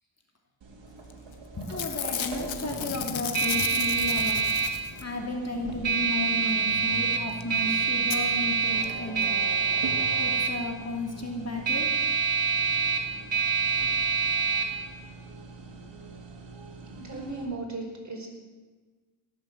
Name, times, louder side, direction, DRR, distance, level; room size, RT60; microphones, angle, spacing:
sound 1, 0.6-17.4, right 5 dB, 65° right, 3.1 m, -28 dB
Packing tape duct tape / Tearing, 1.1-1.3 1.6-5.2 7.1-7.2 7.4-7.5 8.1-8.2 8.8-8.9 9.1-9.2, left 8 dB, 70° left, 1.4 m, -34 dB
voice 1, 1.5-4.4 5.0-9.5 10.2-12.0, left 2 dB, 30° left, 1 dB, 2.9 m, -34 dB
voice 2, 16.9-18.3, right 3 dB, 35° right, 0 dB, 5.1 m, -36 dB
18.0 x 7.8 x 7.8 m, 1.3 s
cardioid pair, 55°, 48 cm